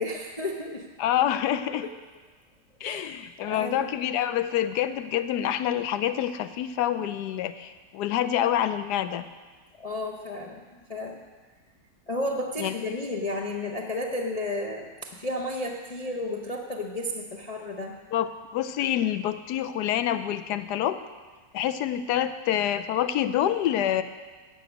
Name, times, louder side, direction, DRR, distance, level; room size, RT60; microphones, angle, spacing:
voice 1, 0.0-0.9 1.7-1.9 2.8-3.0 3.4-3.9 9.8-11.2 12.1-17.9, left 1 dB, 55° left, 0 dB, 0.4 m, -32 dB
voice 2, 1.0-1.8 2.8-9.3 12.6-12.7 18.1-21.0 21.5-24.0, left 11 dB, 80° left, 11 dB, 1.1 m, -27 dB
9.8 x 6.1 x 8.0 m, 1.3 s
omnidirectional pair, 1.8 m